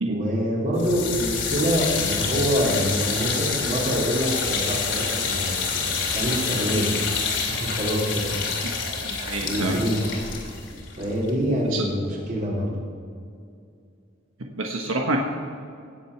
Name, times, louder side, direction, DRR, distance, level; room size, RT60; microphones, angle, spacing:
voice 1, 0.1-6.9 7.5-8.5 9.4-10.3 11.0-12.7, equal, 40° right, -5 dB, 4.1 m, -26 dB
sound 1, 0.8-11.8, left 5 dB, 65° left, 2.6 m, -28 dB
voice 2, 9.0-9.7 11.7-11.8 14.6-15.2, right 2 dB, 85° right, 1 dB, 1.3 m, -27 dB
17.5 x 7.7 x 5.8 m, 2.4 s
head